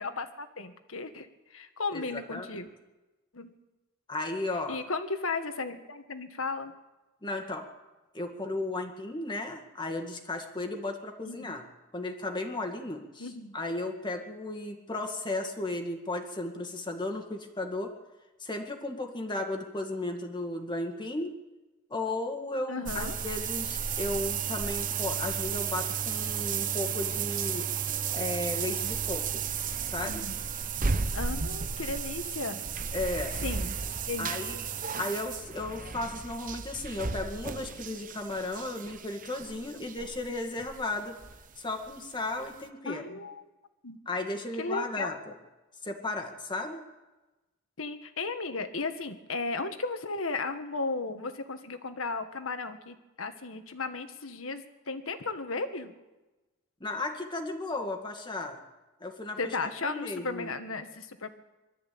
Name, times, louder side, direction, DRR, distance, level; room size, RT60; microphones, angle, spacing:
voice 1, 0.0-2.7 3.3-3.5 4.7-6.7 11.2-11.6 13.2-13.5 22.7-23.1 30.0-30.4 31.1-32.6 33.4-33.8 34.1-34.3 42.8-43.5 43.8-44.0 44.6-45.2 47.8-55.9 59.4-61.3, left 3 dB, 70° left, 8 dB, 1.7 m, -35 dB
voice 2, 1.9-2.5 4.1-4.8 7.2-7.7 8.1-11.6 11.9-17.9 18.4-21.3 21.9-27.7 28.1-29.4 29.9-30.2 32.9-33.4 34.2-34.6 35.0-41.1 41.6-43.0 44.1-45.2 45.8-46.9 56.8-58.6 59.0-59.4 59.8-60.5, left 2 dB, 20° left, 3 dB, 2.0 m, -35 dB
sound 1, 22.9-41.5 41.8-41.9 42.4-42.5, right 6 dB, 40° right, 0.9 m, -33 dB
23.0 x 13.5 x 8.6 m, 1.1 s
head